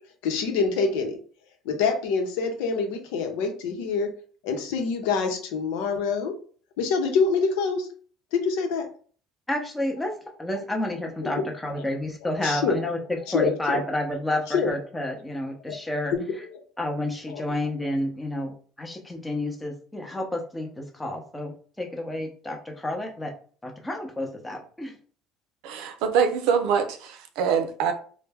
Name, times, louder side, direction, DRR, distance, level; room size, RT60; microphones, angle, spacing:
voice 1, 0.2-1.2 1.6-4.1 4.4-6.3 6.8-7.9 8.3-8.9 11.2-11.4 12.4-12.8 13.3-13.8 14.5-14.8 16.1-16.2 17.3-17.4, left 5 dB, 90° left, 4 dB, 0.8 m, -25 dB
voice 2, 9.5-16.4 16.8-23.3 23.6-24.9, left 1 dB, 10° left, 1 dB, 0.6 m, -30 dB
voice 3, 25.6-27.9, right 7 dB, 75° right, 7 dB, 0.5 m, -24 dB
3.2 x 2.2 x 3.4 m, 0.43 s
cardioid pair, 150°, 0 cm